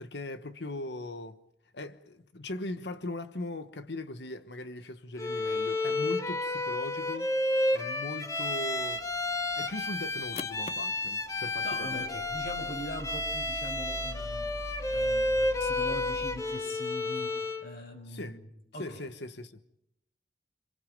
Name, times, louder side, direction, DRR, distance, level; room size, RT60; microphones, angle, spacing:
voice 1, 0.0-1.4 1.7-7.3 7.7-9.0 9.6-12.1 18.1-18.4 18.8-19.6, left 2 dB, 75° left, 1.2 m, -39 dB
Bowed string instrument, 5.2-17.7, left 2 dB, 20° left, 1.6 m, -31 dB
sound 1, 8.8-16.4, left 2 dB, 35° left, 0.8 m, -44 dB
voice 2, 11.6-18.5 18.7-19.0, left 1 dB, 55° left, 6.1 m, -42 dB
27.0 x 25.5 x 5.2 m
head